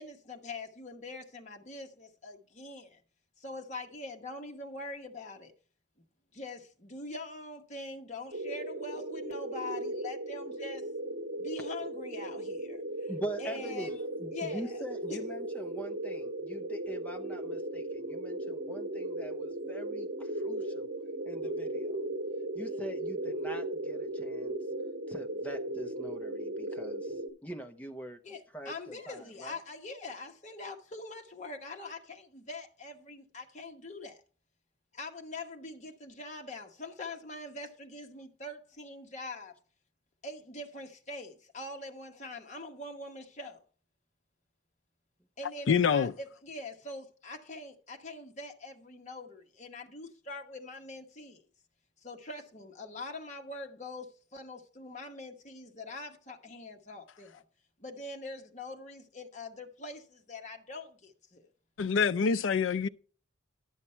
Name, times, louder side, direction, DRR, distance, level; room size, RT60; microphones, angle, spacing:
voice 1, 0.0-3.0 3.4-5.5 6.3-10.9 11.4-13.1 13.4-14.0 14.3-14.8 15.1-15.2 28.2-34.2 34.9-39.5 40.2-43.6 45.4-51.4 52.0-57.4 57.8-61.5, left 2 dB, 35° left, 1.1 m, -43 dB
sound 1, 8.3-27.3, right 1 dB, 60° right, 2.1 m, -37 dB
voice 2, 13.1-20.9 21.2-22.0 22.5-24.6 25.1-28.2 28.5-29.6, right 1 dB, 10° left, 0.8 m, -43 dB
voice 3, 45.7-46.1 61.8-62.9, left 6 dB, 75° left, 0.4 m, -26 dB
11.0 x 7.1 x 4.4 m
head